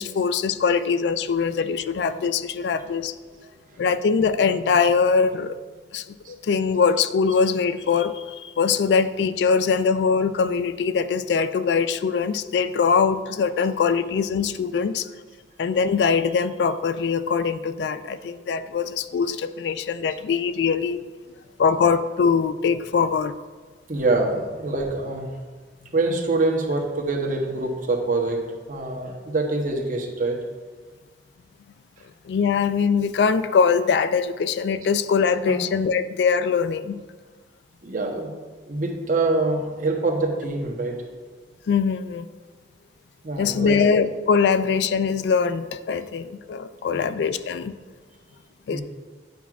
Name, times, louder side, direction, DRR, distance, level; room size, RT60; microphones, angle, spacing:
voice 1, 0.0-3.1 3.8-5.6 5.9-15.1 15.6-21.0 21.6-23.3 32.3-37.0 41.7-42.3 43.4-47.7 48.7-48.8, left 5 dB, 70° left, 12 dB, 0.3 m, -22 dB
voice 2, 21.4-21.8 23.9-25.3 25.9-30.4 34.8-34.9 35.5-35.6 37.8-38.3 38.7-40.9 43.2-43.9 46.9-47.2 48.7-48.8, right 2 dB, 50° right, 1 dB, 0.9 m, -25 dB
9.2 x 5.8 x 2.4 m, 1.4 s
head